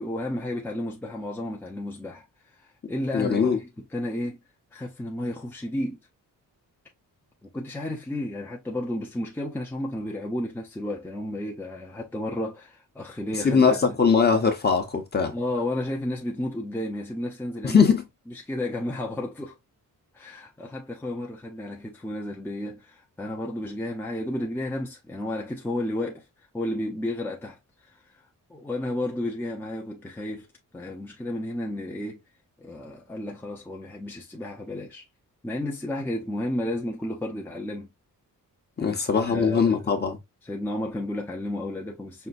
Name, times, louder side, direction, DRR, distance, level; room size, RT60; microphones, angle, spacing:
voice 1, 0.0-2.2 2.5-4.4 4.7-6.0 7.4-13.8 15.3-17.8 18.3-19.6 20.1-26.3 26.5-28.0 28.5-30.5 30.7-32.2 32.6-35.0 35.4-37.9 38.8-39.7 40.4-42.3, left 1 dB, 5° left, 0.7 m, -32 dB
voice 2, 3.1-3.6 13.4-15.3 17.6-18.0 38.8-40.2, left 5 dB, 30° left, 1.0 m, -21 dB
5.5 x 2.8 x 2.5 m
wide cardioid pair, 180°, 34 cm